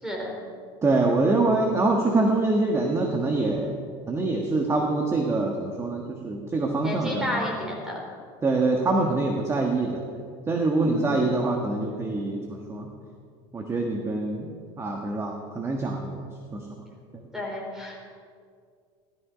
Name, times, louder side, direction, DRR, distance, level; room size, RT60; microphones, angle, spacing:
voice 1, 0.0-0.3 6.8-8.0 10.8-11.3 17.3-18.0, left 1 dB, 5° right, -1 dB, 4.0 m, -32 dB
voice 2, 0.8-3.8 4.1-7.4 8.4-12.9 13.5-14.5 14.8-16.2 16.5-16.6, right 2 dB, 20° right, 2 dB, 1.4 m, -25 dB
16.5 x 13.0 x 5.1 m, 2.2 s
supercardioid pair, 135°, 14 cm